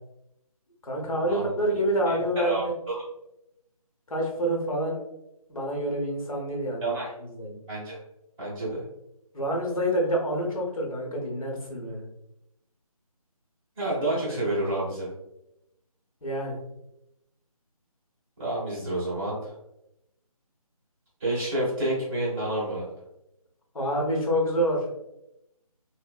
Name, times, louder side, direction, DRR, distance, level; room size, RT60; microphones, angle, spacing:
voice 1, 0.8-2.7 4.1-5.0 5.5-7.6 9.3-12.0 16.2-16.6 23.7-24.8, right 1 dB, 65° left, 0 dB, 0.9 m, -27 dB
voice 2, 2.4-3.0 6.8-7.1 7.7-7.9 8.4-8.8 13.8-15.1 18.4-19.5 21.2-22.9, right 1 dB, 15° right, -16 dB, 0.7 m, -29 dB
2.8 x 2.0 x 2.3 m, 0.85 s
figure-of-eight pair, 170°, 19 cm